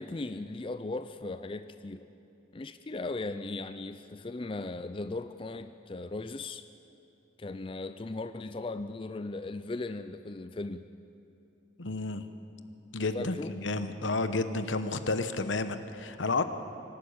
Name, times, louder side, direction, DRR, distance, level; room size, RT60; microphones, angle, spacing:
voice 1, 0.0-2.1 2.5-6.7 7.4-10.9 13.1-13.5, left 2 dB, 25° left, 10 dB, 0.4 m, -37 dB
voice 2, 11.8-12.2 12.9-16.4, left 3 dB, 80° left, 10 dB, 1.0 m, -31 dB
25.0 x 12.0 x 8.7 m, 2.9 s
head